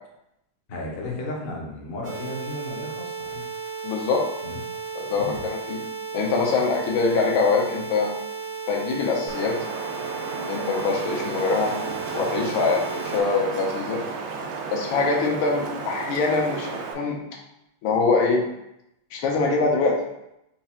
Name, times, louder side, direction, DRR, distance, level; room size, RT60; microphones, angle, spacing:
voice 1, 0.7-3.4 4.4-4.6 5.1-5.4, left 1 dB, 55° left, -3 dB, 0.5 m, -34 dB
sound 1, 2.0-13.2, right 5 dB, 70° right, 1.1 m, -34 dB
voice 2, 3.8-4.3 4.9-5.8 6.1-8.1 8.7-9.6 10.3-11.7 12.1-14.0 14.7-17.2 17.8-18.4 19.1-20.0, left 4 dB, 80° left, 0 dB, 1.6 m, -23 dB
Wind, 9.3-16.9, right 4 dB, 85° right, 0.8 m, -33 dB
4.4 x 2.4 x 4.2 m, 0.84 s
omnidirectional pair, 2.2 m